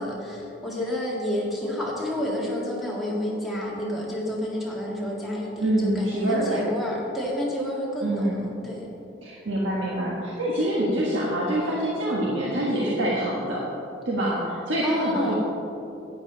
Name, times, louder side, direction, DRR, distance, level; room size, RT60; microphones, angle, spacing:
voice 1, 0.0-8.9 14.8-15.3, left 1 dB, ahead, -5 dB, 1.9 m, -29 dB
voice 2, 5.6-6.7 8.0-8.4 9.2-13.6 14.0-15.3, right 1 dB, 80° right, -5 dB, 1.4 m, -25 dB
11.5 x 9.6 x 4.0 m, 2.9 s
head